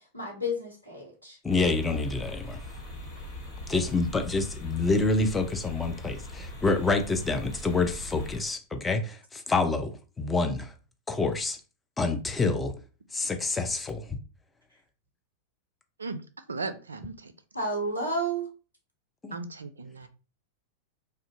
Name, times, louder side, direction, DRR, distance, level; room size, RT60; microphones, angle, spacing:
voice 1, 0.1-1.4 17.5-18.5, right 1 dB, 85° left, 1.0 m, -31 dB
voice 2, 1.4-2.6 3.7-10.7 11.1-11.6 12.0-12.7 13.1-14.2 19.2-19.4, left 3 dB, 15° left, 0.4 m, -27 dB
sound 1, 1.5-8.4, left 1 dB, 50° left, 1.2 m, -41 dB
voice 3, 16.5-17.3 19.3-20.1, right 3 dB, 75° right, 0.3 m, -36 dB
2.5 x 2.1 x 2.6 m
figure-of-eight pair, 90°, 0 cm